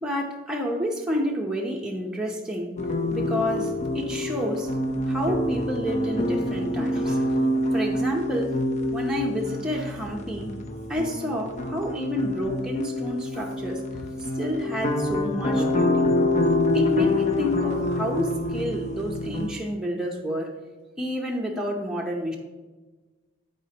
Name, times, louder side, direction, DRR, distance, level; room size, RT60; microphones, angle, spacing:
voice 1, 0.0-2.8 3.1-4.8 5.1-7.2 7.7-8.6 8.9-10.5 10.9-14.1 14.3-16.1 16.7-20.5 21.0-22.4, equal, 5° right, -1 dB, 0.8 m, -29 dB
sound 1, 2.8-19.5, left 1 dB, 35° left, 0.7 m, -26 dB
12.5 x 4.3 x 2.9 m, 1.2 s
head